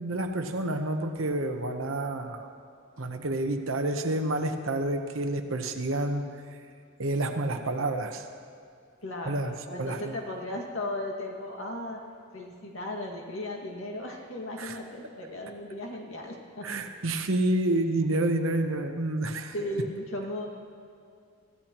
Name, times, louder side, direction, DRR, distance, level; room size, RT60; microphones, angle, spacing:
voice 1, 0.0-2.5 3.0-6.3 7.0-8.3 9.2-9.5 9.8-10.1 14.6-14.8 16.6-19.5, right 1 dB, 70° right, 6 dB, 1.0 m, -29 dB
voice 2, 9.0-12.0 12.3-16.7 19.5-20.5, left 1 dB, 70° left, 0 dB, 2.1 m, -36 dB
22.0 x 15.5 x 3.0 m, 2.4 s
head